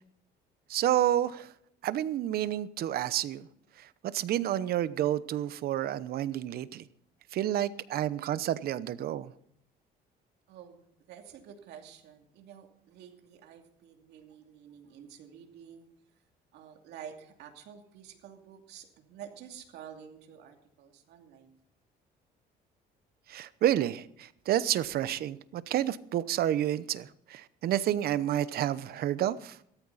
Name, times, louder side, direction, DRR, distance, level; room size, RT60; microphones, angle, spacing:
voice 1, 0.7-1.4 1.8-3.4 4.1-6.8 7.3-9.3 23.3-24.0 24.5-27.0 27.3-29.5, right 12 dB, 65° right, 0.9 m, -29 dB
voice 2, 10.5-10.8 11.1-15.9 16.5-21.6, right 8 dB, 80° right, 2.7 m, -49 dB
17.0 x 13.5 x 4.1 m
cardioid pair, 110°, 17 cm